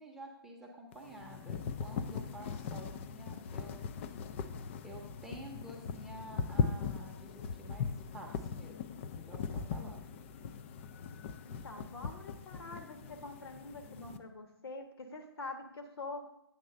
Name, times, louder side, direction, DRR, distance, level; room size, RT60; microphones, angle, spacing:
voice 1, 0.0-3.8 4.8-10.1, right 1 dB, 5° right, -1 dB, 0.7 m, -50 dB
sound 1, 0.9-14.2, left 6 dB, 30° left, 0.3 m, -39 dB
voice 2, 11.4-16.3, left 3 dB, 70° left, 5 dB, 1.2 m, -45 dB
8.7 x 3.2 x 6.4 m, 0.80 s
figure-of-eight pair, 135°, 13 cm